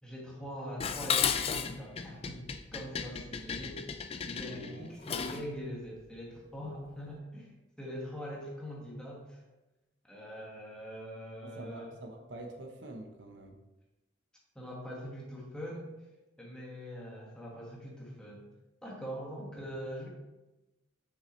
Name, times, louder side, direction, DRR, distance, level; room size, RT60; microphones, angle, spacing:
voice 1, 0.0-3.9 4.2-9.4 10.1-11.9 14.5-15.9 16.4-18.5 18.8-20.1, equal, 5° left, -4 dB, 1.5 m, -43 dB
Dishes pots and pans, 0.8-5.5, left 7 dB, 30° left, 0.3 m, -34 dB
voice 2, 4.5-5.0 11.4-13.6, right 2 dB, 70° right, 3 dB, 0.8 m, -46 dB
6.7 x 6.3 x 3.1 m, 1.1 s
head